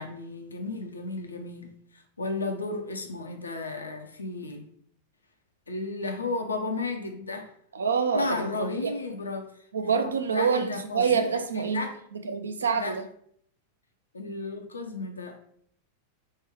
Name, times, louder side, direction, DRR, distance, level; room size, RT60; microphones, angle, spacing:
voice 1, 0.0-1.7 2.2-4.6 5.7-7.5 8.1-9.5 9.8-12.0 12.7-13.0 14.1-15.4, left 3 dB, 75° left, 5 dB, 0.4 m, -33 dB
voice 2, 7.7-8.9 9.7-11.9 12.2-13.1, right 6 dB, 70° right, 7 dB, 0.3 m, -26 dB
3.2 x 2.2 x 3.4 m, 0.63 s
figure-of-eight pair, 90°, 0 cm